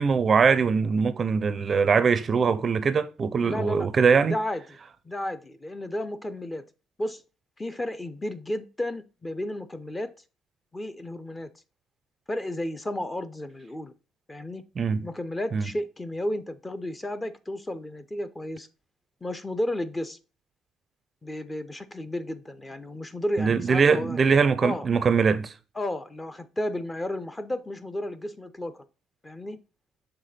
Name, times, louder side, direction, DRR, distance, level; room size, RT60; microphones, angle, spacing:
voice 1, 0.0-4.4 14.8-15.1 15.5-15.7 23.4-25.5, right 5 dB, 30° right, 0.5 m, -22 dB
voice 2, 3.4-3.9 4.2-4.6 5.0-6.7 7.0-7.2 7.6-10.1 10.7-11.5 12.3-13.9 14.3-14.6 15.0-18.7 19.2-20.2 21.2-24.2 24.6-24.9 25.8-28.9 29.2-29.6, left 1 dB, 15° left, 0.5 m, -32 dB
6.7 x 3.4 x 4.1 m
cardioid pair, 125°, 0 cm